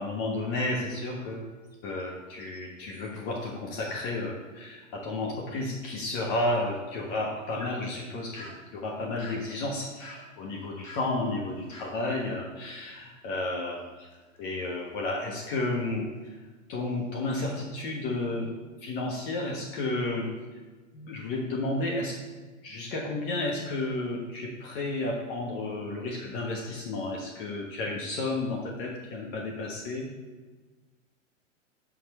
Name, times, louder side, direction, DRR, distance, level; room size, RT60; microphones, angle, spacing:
voice 1, 0.0-1.5 1.8-14.1 14.4-16.1 16.7-18.5 18.8-20.3 20.9-22.2 22.6-30.1, left 2 dB, 40° left, -1 dB, 1.3 m, -32 dB
sound 1, 1.6-3.6 3.8-4.2 4.6-4.7 5.3-5.4 7.0-13.7 14.1-15.6 16.2-16.4 16.9-17.6, left 1 dB, 85° left, 1.8 m, -51 dB
6.6 x 6.3 x 4.2 m, 1.3 s
figure-of-eight pair, 105°, 39 cm